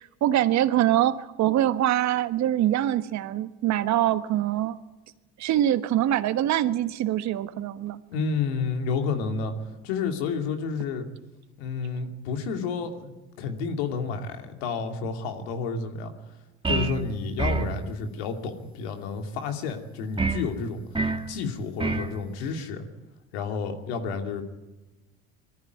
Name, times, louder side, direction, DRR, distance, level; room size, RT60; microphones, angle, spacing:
voice 1, 0.0-4.8 5.4-8.0, right 12 dB, 60° right, 12 dB, 1.3 m, -24 dB
voice 2, 8.1-9.5 9.8-11.1 11.6-16.1 16.7-22.9 23.3-24.4, left 5 dB, 85° left, 5 dB, 2.8 m, -30 dB
sound 1, 16.6-17.0 17.4-17.8 20.2-20.5 20.9-21.3 21.8-22.1, right 4 dB, 15° right, 2.0 m, -26 dB
21.0 x 14.0 x 9.4 m, 1.1 s
supercardioid pair, 80°, 32 cm